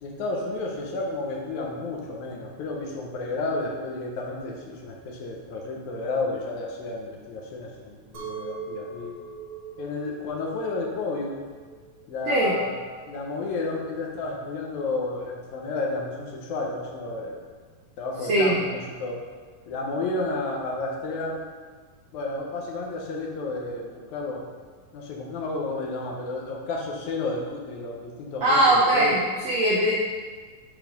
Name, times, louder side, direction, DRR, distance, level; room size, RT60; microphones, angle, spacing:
voice 1, 0.0-9.2 9.8-11.4 12.1-12.8 13.1-17.4 18.0-19.2 19.7-21.4 22.1-24.5 24.9-29.2, left 2 dB, 70° left, -1 dB, 1.8 m, -31 dB
Chink clink, 8.1-13.3, right 5 dB, 50° right, 1.5 m, -41 dB
voice 2, 28.4-29.9, right 1 dB, 85° right, -6 dB, 1.4 m, -20 dB
7.3 x 3.9 x 5.2 m, 1.5 s
omnidirectional pair, 4.3 m